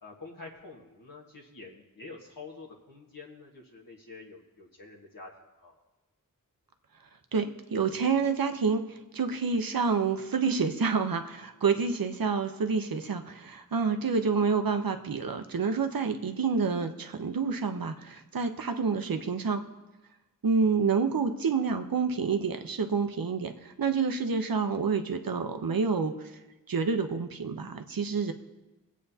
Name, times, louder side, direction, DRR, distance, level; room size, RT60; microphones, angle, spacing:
voice 1, 0.0-5.3 5.6-5.8, left 3 dB, 70° left, -3 dB, 1.5 m, -47 dB
voice 2, 7.3-8.8 9.1-19.6 20.4-26.1 26.7-28.3, right 5 dB, 80° right, 7 dB, 0.8 m, -28 dB
22.5 x 8.4 x 2.8 m, 1.1 s
wide cardioid pair, 45°, 34 cm